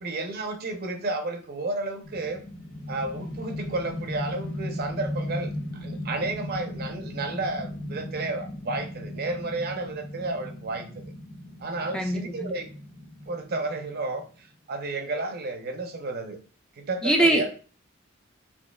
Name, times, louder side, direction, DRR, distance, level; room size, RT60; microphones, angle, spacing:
voice 1, 0.0-2.4 2.9-11.0 11.6-12.7 13.3-16.4 16.8-17.5, right 2 dB, 50° right, 7 dB, 0.6 m, -32 dB
sound 1, 2.0-14.2, left 1 dB, 80° left, 1.4 m, -37 dB
voice 2, 11.9-12.5 17.0-17.4, right 1 dB, 5° left, 3 dB, 0.4 m, -22 dB
5.1 x 3.6 x 2.3 m, 0.39 s
head